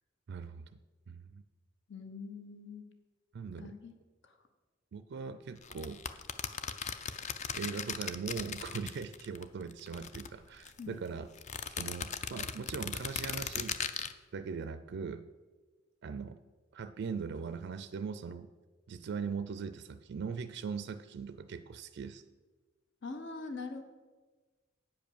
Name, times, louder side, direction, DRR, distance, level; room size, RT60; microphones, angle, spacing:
voice 1, 0.3-0.7 1.1-1.4 3.3-3.7 4.9-6.0 7.5-11.3 11.8-13.8 14.3-15.2 16.0-16.4 16.7-18.5 18.9-22.2, right 5 dB, 55° right, 11 dB, 0.4 m, -40 dB
voice 2, 1.9-2.8 3.6-3.9 4.2-4.4 10.8-11.0 23.0-23.8, left 4 dB, 65° left, 7 dB, 0.9 m, -43 dB
sound 1, 5.6-9.4 9.7-10.8 11.4-14.1, left 6 dB, 35° left, 0.4 m, -38 dB
9.0 x 5.2 x 7.0 m, 1.3 s
head